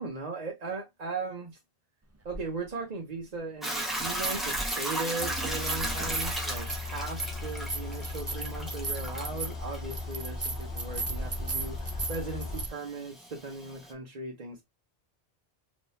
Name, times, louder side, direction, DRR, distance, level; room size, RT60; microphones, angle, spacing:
voice 1, 0.0-1.6 2.2-14.6, right 3 dB, 45° right, 0.8 m, -38 dB
sound 1, 2.3-2.4 4.0-4.9 5.2-12.7, right 3 dB, 25° right, 0.3 m, -36 dB
Hiss / Toilet flush / Trickle dribble, 3.6-13.9, right 1 dB, ahead, 0.9 m, -37 dB
sound 2, 5.2-12.7, left 4 dB, 90° left, 1.0 m, -38 dB
3.7 x 3.1 x 2.6 m
omnidirectional pair, 1.1 m